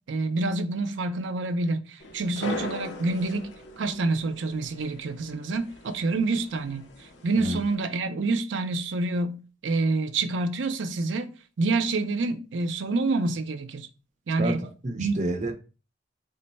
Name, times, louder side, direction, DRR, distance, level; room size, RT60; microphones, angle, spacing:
voice 1, 0.1-3.5 3.8-6.9 7.2-11.3 11.6-13.9 14.3-14.6 15.0-15.2, right 3 dB, 85° right, 0.5 m, -27 dB
sound 1, 2.0-7.7, left 2 dB, 80° left, 0.8 m, -41 dB
voice 2, 14.4-15.5, right 1 dB, 40° right, 0.7 m, -29 dB
3.8 x 2.2 x 4.0 m
head